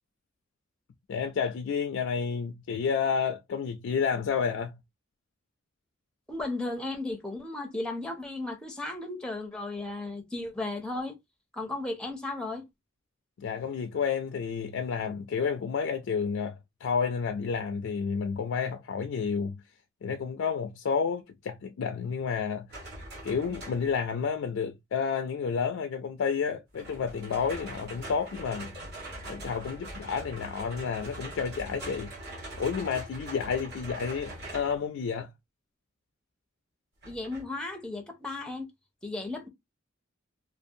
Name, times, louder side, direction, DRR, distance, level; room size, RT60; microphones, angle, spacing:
voice 1, 1.1-4.7 13.4-19.6 20.0-22.7 23.2-28.7 29.2-32.1 32.6-35.3, left 6 dB, 65° left, 0.3 m, -30 dB
voice 2, 6.3-11.2 11.5-12.6 37.1-38.7 39.0-39.5, left 2 dB, 5° left, 0.6 m, -35 dB
sound 1, 22.7-24.1 26.7-34.8 37.0-37.4, right 1 dB, 55° right, 1.3 m, -42 dB
2.5 x 2.4 x 2.6 m
head